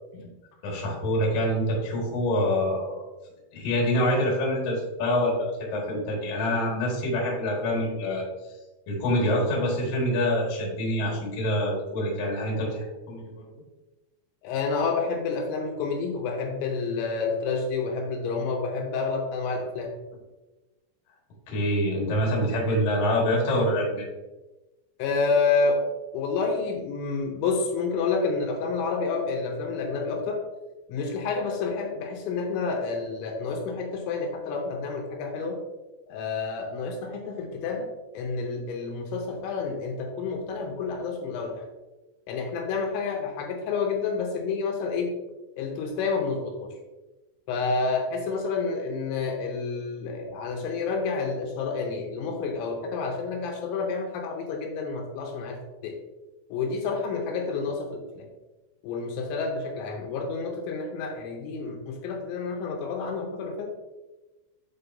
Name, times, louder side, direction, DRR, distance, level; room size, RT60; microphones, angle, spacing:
voice 1, 0.6-3.0 3.5-8.3 8.9-13.6 21.5-24.0, equal, 60° left, -2 dB, 1.7 m, -26 dB
voice 2, 14.4-19.9 25.0-25.8 26.1-30.4 30.9-35.6 36.1-37.9 38.1-41.7 42.3-45.2 45.6-46.7 47.5-56.0 56.5-58.3 58.8-63.7, left 4 dB, 80° left, 2 dB, 2.9 m, -29 dB
8.6 x 4.1 x 2.6 m, 1.1 s
omnidirectional pair, 5.5 m